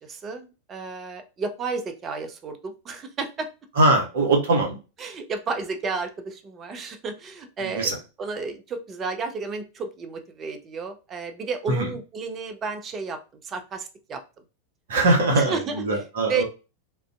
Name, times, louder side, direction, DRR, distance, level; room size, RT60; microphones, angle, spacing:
voice 1, 0.0-3.5 5.0-7.9 8.2-14.2 15.3-15.8 16.3-16.4, right 4 dB, 25° right, 7 dB, 0.4 m, -32 dB
voice 2, 3.8-4.8 7.6-8.0 11.7-11.9 14.9-16.4, right 2 dB, 60° right, 2 dB, 0.8 m, -21 dB
2.4 x 2.2 x 2.4 m, 0.31 s
figure-of-eight pair, 90°, 0 cm